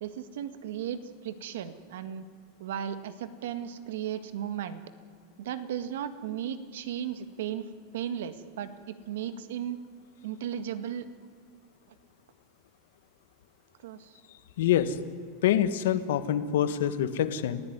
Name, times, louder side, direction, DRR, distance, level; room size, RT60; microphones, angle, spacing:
voice 1, 0.0-2.2 2.6-4.8 5.4-9.8 10.2-11.1 13.8-14.2, right 9 dB, 85° right, 11 dB, 1.8 m, -35 dB
voice 2, 14.6-15.0 15.4-17.6, left 10 dB, 85° left, 11 dB, 1.6 m, -25 dB
29.5 x 16.0 x 9.6 m, 2.1 s
supercardioid pair, 175°, 0 cm